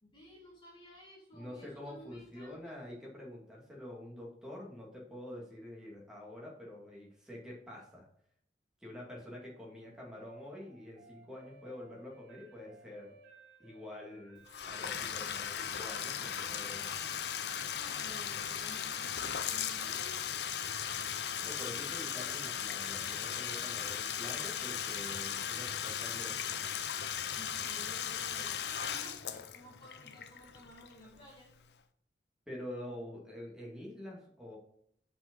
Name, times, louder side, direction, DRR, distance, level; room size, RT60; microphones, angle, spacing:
voice 1, 0.0-2.8 17.6-20.3 27.4-31.5, left 1 dB, 25° left, -5 dB, 2.2 m, -54 dB
voice 2, 1.3-8.1 8.8-13.1 13.6-16.9 21.4-26.5 32.5-34.6, left 1 dB, 5° right, -3 dB, 2.2 m, -47 dB
sound 1, 9.0-23.1, right 3 dB, 80° right, 2.0 m, -63 dB
Bathtub (filling or washing), 14.5-31.2, left 8 dB, 65° left, 0.6 m, -37 dB
5.7 x 5.0 x 6.0 m, 0.68 s
head